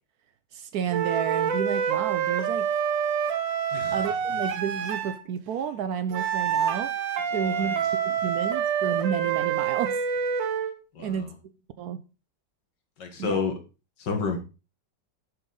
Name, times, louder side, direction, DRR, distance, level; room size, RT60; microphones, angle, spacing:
voice 1, 0.5-2.7 3.9-6.9 7.3-10.0 11.0-11.5 11.8-12.0 13.2-13.4, right 8 dB, 70° right, 1.0 m, -31 dB
sound 1, 0.9-5.2 6.1-10.8, right 8 dB, 90° right, 1.6 m, -27 dB
voice 2, 7.3-7.8 10.9-11.3 13.0-13.5 14.0-14.4, left 5 dB, 75° left, 2.1 m, -30 dB
7.1 x 6.9 x 3.8 m
omnidirectional pair, 1.9 m